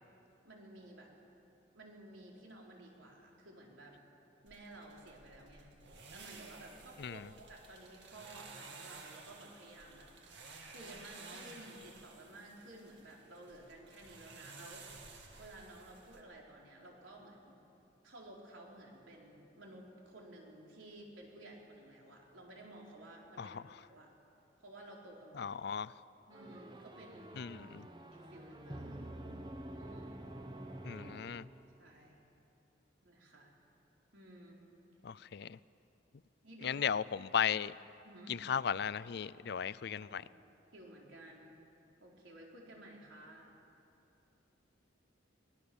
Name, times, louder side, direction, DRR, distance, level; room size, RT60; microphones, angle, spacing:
voice 1, 0.4-1.1 1.7-4.0 4.4-10.1 10.7-14.9 15.4-17.6 18.0-24.1 24.6-25.6 26.3-27.3 28.1-29.1 29.7-30.3 31.8-32.2 33.0-33.5 34.1-34.6 36.4-36.8 38.0-38.4 40.0-40.3 40.7-41.6 42.0-43.6, right 1 dB, 90° right, -1 dB, 4.2 m, -54 dB
sound 1, 4.5-16.2, right 4 dB, 65° right, 2.5 m, -54 dB
voice 2, 25.4-25.9 27.4-27.9 30.8-31.5 35.0-35.6 36.6-37.7 38.3-40.2, left 7 dB, 55° left, 18 dB, 0.4 m, -36 dB
sound 2, 26.3-31.9, right 1 dB, 25° right, 1.2 m, -48 dB
24.5 x 19.0 x 7.0 m, 2.9 s
head